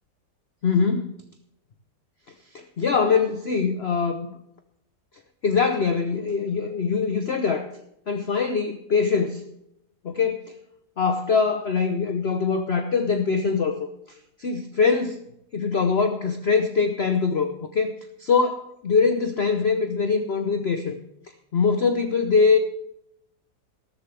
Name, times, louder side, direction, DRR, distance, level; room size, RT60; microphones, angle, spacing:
voice 1, 0.6-1.1 2.5-4.3 5.4-7.7 8.1-9.4 10.0-10.6 11.0-15.2 15.5-17.9 18.2-21.0 21.5-22.6, left 5 dB, 45° left, 7 dB, 0.9 m, -23 dB
13.5 x 13.5 x 3.4 m, 0.80 s
omnidirectional pair, 1.8 m